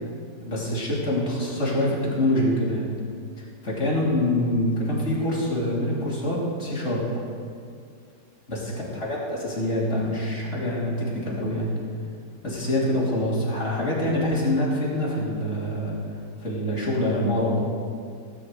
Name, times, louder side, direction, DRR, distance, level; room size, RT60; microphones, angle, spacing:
voice 1, 0.4-2.9 3.4-7.2 8.5-11.7 12.4-16.0 16.4-17.6, left 1 dB, 40° left, -6 dB, 3.4 m, -25 dB
18.5 x 9.4 x 4.8 m, 2.3 s
omnidirectional pair, 1.9 m